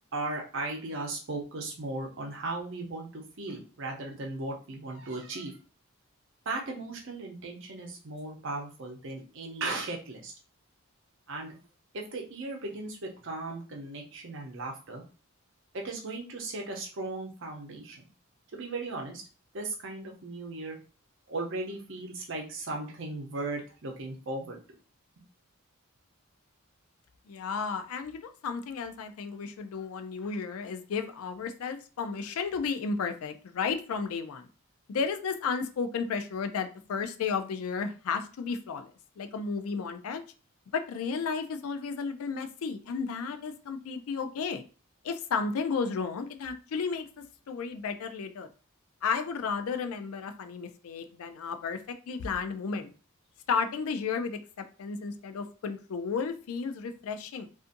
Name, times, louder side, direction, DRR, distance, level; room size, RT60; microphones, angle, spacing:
voice 1, 0.1-5.6 6.5-10.3 11.3-11.5 11.9-15.0 15.7-18.0 18.5-19.2 19.5-20.8 21.3-24.6, right 2 dB, 55° right, 1 dB, 0.6 m, -37 dB
voice 2, 27.3-34.5 34.9-38.9 39.2-40.2 40.7-44.6 45.0-47.1 47.5-48.5 49.0-52.9 53.5-57.5, left 5 dB, 75° left, 7 dB, 0.4 m, -33 dB
2.5 x 2.4 x 2.5 m, 0.36 s
head